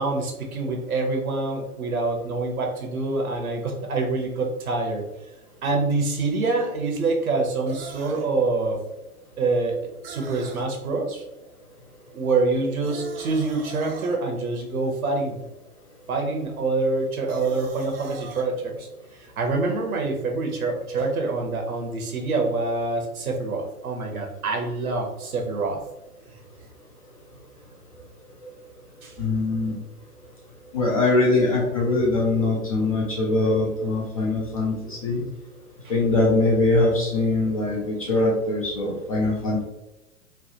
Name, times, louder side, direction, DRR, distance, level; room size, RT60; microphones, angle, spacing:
voice 1, 0.0-5.0 5.6-8.8 9.4-11.2 12.1-15.4 16.1-18.9 19.4-25.8 29.0-29.1, right 3 dB, 70° right, 1 dB, 0.9 m, -26 dB
sound 1, 7.7-8.3 10.0-10.7 12.8-14.2 17.3-18.4, right 4 dB, 40° right, 0.5 m, -40 dB
voice 2, 29.2-29.7 30.7-35.2 35.9-39.6, left 2 dB, 25° left, -4 dB, 0.4 m, -22 dB
3.2 x 2.2 x 2.7 m, 0.97 s
figure-of-eight pair, 110°, 44 cm